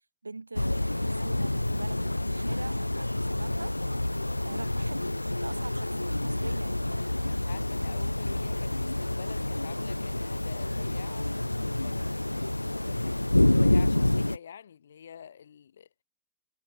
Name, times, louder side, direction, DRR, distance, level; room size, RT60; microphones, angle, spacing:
voice 1, 0.2-3.7 4.4-7.1, right 3 dB, 80° right, 1.7 m, -43 dB
sound 1, 0.5-14.4, left 1 dB, 85° left, 0.8 m, -28 dB
voice 2, 7.2-12.1 12.9-16.0, left 8 dB, 65° left, 7.0 m, -48 dB
figure-of-eight pair, 90°, 0 cm